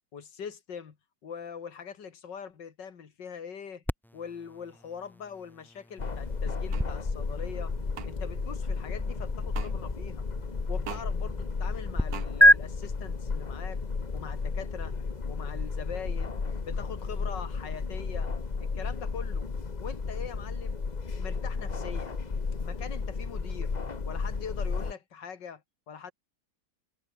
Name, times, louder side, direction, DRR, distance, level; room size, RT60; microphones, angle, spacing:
voice 1, 0.1-1.0 1.2-3.8 4.1-7.7 8.1-10.3 10.7-13.8 14.1-15.0 15.3-16.3 16.7-18.3 18.6-19.5 19.8-20.8 21.2-22.2 22.6-23.7 24.1-25.6 25.9-26.1, left 7 dB, 85° left, 2.7 m, -42 dB
sound 1, 3.9-12.0 12.4-12.6, equal, ahead, 0.4 m, -29 dB
sound 2, 6.0-24.9, left 4 dB, 25° left, 1.2 m, -33 dB
sound 3, 6.7-6.9 7.9-8.1 9.5-9.7 10.8-11.1 12.1-12.3, right 8 dB, 60° right, 1.6 m, -39 dB
omnidirectional pair, 1.9 m